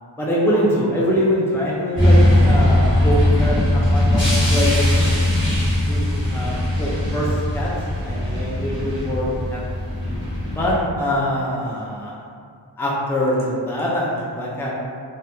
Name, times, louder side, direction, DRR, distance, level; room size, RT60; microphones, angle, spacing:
voice 1, 0.2-5.1 5.9-7.3 7.5-7.7 8.0-9.6 10.5-12.2 12.8-14.7, equal, 5° left, -5 dB, 0.4 m, -23 dB
sound 1, 1.9-10.7, left 1 dB, 25° left, 1.0 m, -19 dB
2.7 x 2.1 x 2.3 m, 2.2 s
wide cardioid pair, 40°, 45 cm